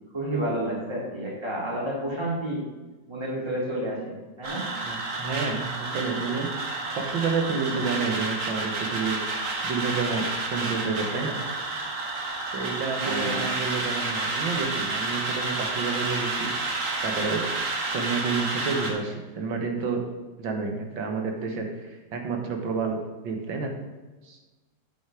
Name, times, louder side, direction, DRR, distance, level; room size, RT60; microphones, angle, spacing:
voice 1, 0.1-2.6 3.1-4.7 13.0-13.5, right 1 dB, 15° right, -5 dB, 2.6 m, -30 dB
sound 1, 4.4-18.9, right 3 dB, 45° right, 1.6 m, -30 dB
voice 2, 4.8-9.2 9.6-11.4 12.5-16.5 17.0-17.4 17.9-20.0 20.4-23.0 23.2-23.7 24.2-24.4, right 4 dB, 80° right, 3 dB, 2.1 m, -30 dB
8.7 x 7.2 x 4.9 m, 1.2 s
omnidirectional pair, 2.1 m